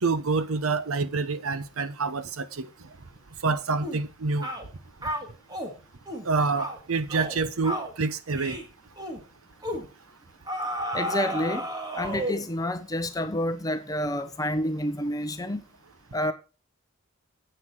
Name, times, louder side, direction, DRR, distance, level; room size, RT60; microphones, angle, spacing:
voice 1, 0.0-2.7 3.4-4.5 6.2-8.6, right 4 dB, 80° right, 0.9 m, -27 dB
sound 1, 3.8-4.0 4.4-4.7 5.0-5.7 6.1-6.3 6.6-6.8 7.1-7.4 7.6-7.9 8.4-8.7 9.0-9.2 9.6-9.9 10.5-12.5, equal, 20° right, 1.8 m, -32 dB
voice 2, 10.9-11.7 11.9-15.6 16.1-16.3, left 1 dB, 15° left, 1.0 m, -29 dB
9.8 x 8.3 x 4.4 m
head